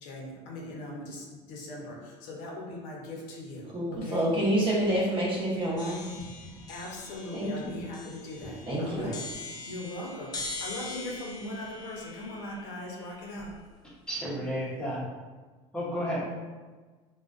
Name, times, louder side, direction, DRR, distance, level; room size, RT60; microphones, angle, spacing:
voice 1, 0.0-3.7 3.9-4.3 6.7-9.2 9.7-13.5, left 1 dB, 75° left, -2 dB, 0.7 m, -40 dB
voice 2, 3.7-6.3 7.3-7.8 8.7-9.1, right 1 dB, 35° right, -6 dB, 0.8 m, -28 dB
sound 1, 5.8-13.7, left 2 dB, 25° left, 0.3 m, -43 dB
voice 3, 14.1-15.0 15.7-16.3, equal, 5° left, -6 dB, 0.7 m, -32 dB
2.4 x 2.2 x 2.4 m, 1.3 s
supercardioid pair, 120°, 15 cm